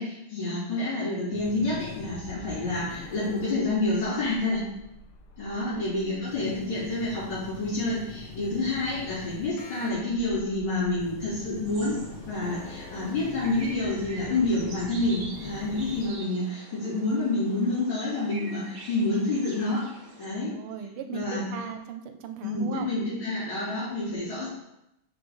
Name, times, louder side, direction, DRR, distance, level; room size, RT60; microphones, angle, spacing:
voice 1, 0.0-4.6 5.4-12.0 12.3-19.9 20.2-20.5 21.1-21.6 22.4-24.5, left 2 dB, 65° left, -13 dB, 3.7 m, -28 dB
sound 1, 1.3-16.1, left 4 dB, 85° left, 1.8 m, -44 dB
voice 2, 5.5-6.1 20.5-22.9, right 7 dB, 90° right, 7 dB, 1.6 m, -37 dB
sound 2, 11.6-20.3, right 2 dB, 45° right, 1.5 m, -46 dB
5.8 x 5.5 x 3.9 m, 0.85 s
omnidirectional pair, 2.4 m